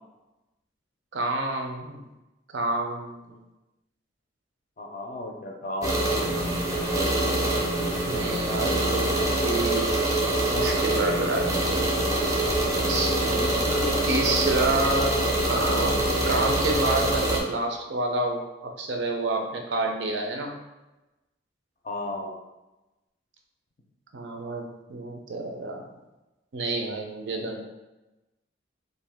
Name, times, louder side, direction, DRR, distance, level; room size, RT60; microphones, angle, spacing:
voice 1, 1.1-2.0 2.5-3.4 8.0-9.9 10.5-11.5 12.8-20.6 24.1-25.8 26.5-27.6, right 2 dB, 70° right, 2 dB, 0.5 m, -29 dB
voice 2, 4.8-6.0 13.3-14.1 21.8-22.4, left 1 dB, 45° left, 1 dB, 0.4 m, -34 dB
sound 1, 5.8-17.4, right 1 dB, 15° right, 0.4 m, -25 dB
2.5 x 2.1 x 3.4 m, 1.0 s
head